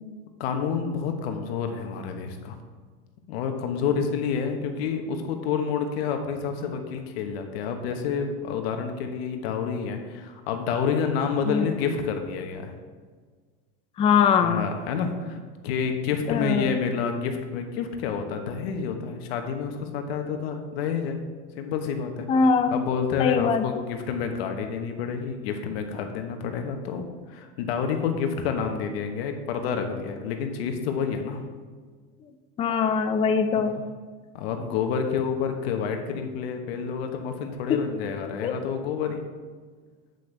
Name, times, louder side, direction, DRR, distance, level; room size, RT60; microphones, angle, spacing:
voice 1, 0.4-2.6 3.3-12.7 14.4-15.4 15.6-21.2 21.5-22.3 22.7-27.0 27.3-31.4 33.6-33.8 34.3-39.2, left 6 dB, 90° left, 5 dB, 1.2 m, -29 dB
voice 2, 14.0-14.7 16.3-16.8 22.3-22.8 23.2-23.8 32.6-33.8 37.7-37.9 38.4-38.5, left 6 dB, 20° left, 7 dB, 0.4 m, -22 dB
8.2 x 8.1 x 3.4 m, 1.5 s
supercardioid pair, 140°, 30 cm